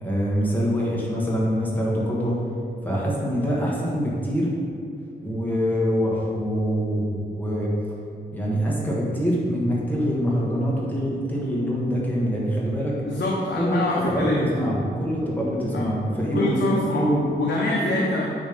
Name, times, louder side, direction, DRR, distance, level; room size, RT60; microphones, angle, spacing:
voice 1, 0.0-2.4 2.8-4.5 5.2-7.7 8.3-13.0 13.6-17.2 17.8-17.9, equal, 10° left, -5 dB, 1.3 m, -24 dB
voice 2, 13.0-14.4 15.7-15.9 16.3-17.1 17.4-18.3, left 2 dB, 70° left, -3 dB, 0.7 m, -25 dB
8.9 x 3.1 x 5.1 m, 2.4 s
wide cardioid pair, 165°, 19 cm